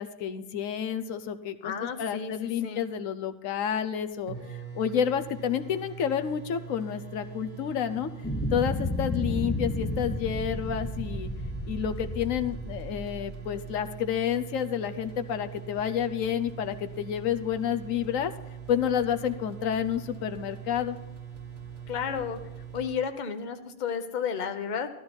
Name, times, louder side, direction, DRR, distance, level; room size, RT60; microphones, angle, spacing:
voice 1, 0.0-8.1 8.5-11.3 11.7-18.3 18.7-21.0, left 8 dB, 85° left, 9 dB, 1.1 m, -30 dB
voice 2, 1.6-2.3 2.6-2.9 21.9-22.4 22.7-24.9, left 6 dB, 40° left, 8 dB, 0.9 m, -32 dB
sound 1, 4.0-4.1 4.3-22.9, right 8 dB, 65° right, 2.1 m, -42 dB
sound 2, 8.2-14.0, left 1 dB, 10° left, 0.9 m, -33 dB
13.5 x 12.5 x 4.4 m, 0.96 s
omnidirectional pair, 1.3 m